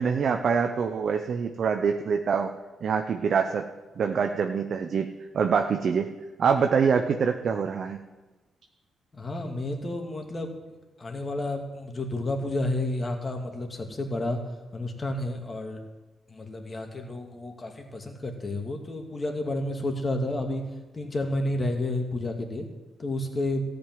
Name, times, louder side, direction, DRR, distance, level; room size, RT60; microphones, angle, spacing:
voice 1, 0.0-2.5 2.8-3.7 4.0-5.1 5.3-6.1 6.4-8.0, right 6 dB, 65° right, 5 dB, 0.8 m, -25 dB
voice 2, 9.1-10.5 11.0-14.4 14.7-15.8 16.3-20.6 20.9-22.7 23.0-23.6, left 1 dB, 35° left, 3 dB, 2.3 m, -30 dB
14.0 x 5.3 x 9.2 m, 1.2 s
supercardioid pair, 55°, 0 cm